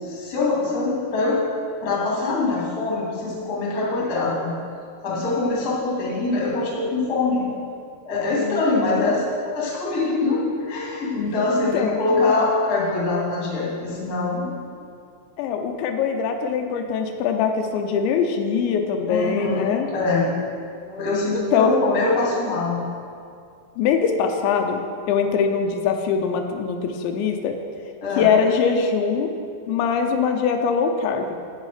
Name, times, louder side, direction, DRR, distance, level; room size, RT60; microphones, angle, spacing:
voice 1, 0.0-1.4 1.8-4.5 5.0-7.5 8.0-14.5 19.1-19.7 19.9-20.3 20.8-22.8 28.0-28.3, left 3 dB, 35° left, -5 dB, 1.8 m, -23 dB
voice 2, 8.4-8.7 11.7-12.1 15.4-19.9 21.3-21.7 23.8-24.8 25.1-27.6 28.2-29.3 29.7-31.3, left 6 dB, 85° left, 4 dB, 3.1 m, -22 dB
10.0 x 8.4 x 4.9 m, 2.3 s
omnidirectional pair, 5.1 m